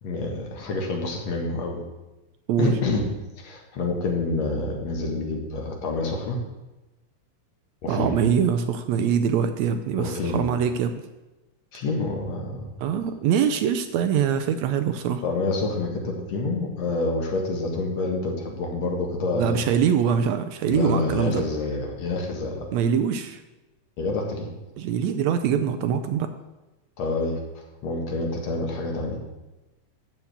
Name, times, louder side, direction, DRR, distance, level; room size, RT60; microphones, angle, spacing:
voice 1, 0.0-1.8 2.6-3.1 3.4-6.4 7.8-8.2 10.0-10.5 11.7-12.7 15.2-19.6 20.7-22.7 24.0-24.5 27.0-29.2, left 2 dB, 60° left, 1 dB, 2.8 m, -27 dB
voice 2, 7.9-10.9 12.8-15.2 19.3-21.4 22.7-23.4 24.8-26.3, right 7 dB, 75° right, 9 dB, 1.8 m, -23 dB
13.0 x 4.7 x 8.1 m, 1.0 s
omnidirectional pair, 3.4 m